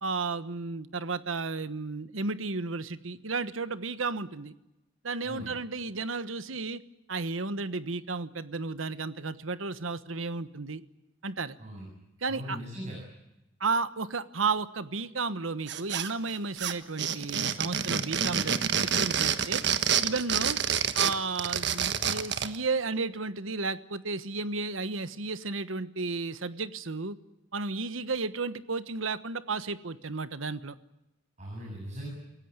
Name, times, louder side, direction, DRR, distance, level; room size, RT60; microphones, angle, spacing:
voice 1, 0.0-4.5 5.0-6.8 7.1-10.8 11.2-11.6 12.2-12.6 13.6-19.6 20.0-20.6 21.0-27.2 27.5-30.7, right 4 dB, 90° right, 13 dB, 1.3 m, -33 dB
voice 2, 12.3-13.0 31.4-32.1, equal, 35° right, -2 dB, 7.5 m, -39 dB
sound 1, 15.7-16.3 16.6-22.6, right 8 dB, 60° right, 1.4 m, -28 dB
28.0 x 16.5 x 9.6 m, 0.93 s
head